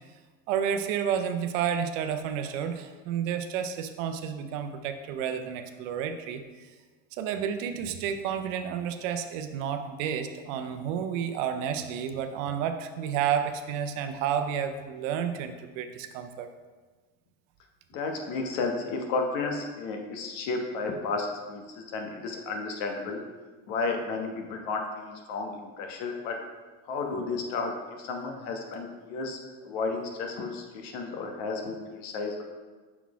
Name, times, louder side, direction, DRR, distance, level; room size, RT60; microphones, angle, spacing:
voice 1, 0.5-6.7 7.2-16.5, right 8 dB, 80° right, 8 dB, 0.7 m, -31 dB
voice 2, 17.9-23.2 23.7-26.4 26.9-27.7 28.0-29.4 29.6-32.4, left 3 dB, 80° left, 3 dB, 1.1 m, -32 dB
5.9 x 4.1 x 4.7 m, 1.4 s
supercardioid pair, 90°, 38 cm